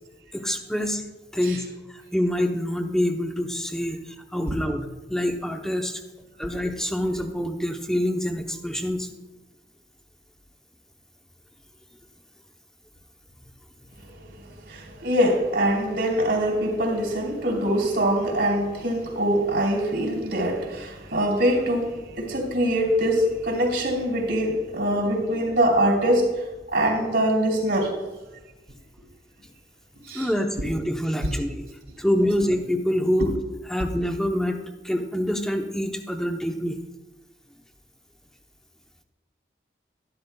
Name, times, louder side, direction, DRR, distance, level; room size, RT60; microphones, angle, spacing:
voice 1, 0.3-1.0 1.3-1.6 2.1-4.0 4.3-6.0 6.4-9.1 30.1-31.6 32.0-33.3 33.7-34.6 34.8-36.8, equal, 5° left, 0.7 m, -26 dB
voice 2, 14.4-27.9 30.0-30.3, right 1 dB, 85° right, 2.9 m, -23 dB
12.0 x 11.5 x 2.2 m
head